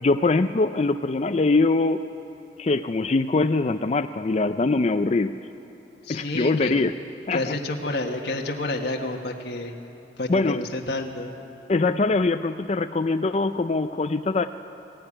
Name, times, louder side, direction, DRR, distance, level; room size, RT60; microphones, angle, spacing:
voice 1, 0.0-2.0 2.6-5.4 6.1-6.9 7.3-7.5 10.3-10.6 11.7-14.5, left 3 dB, 35° left, 8 dB, 0.4 m, -22 dB
voice 2, 6.0-6.8 7.3-9.7 10.2-11.3, left 2 dB, 70° left, 1 dB, 1.5 m, -29 dB
20.5 x 15.5 x 9.9 m, 3.0 s
head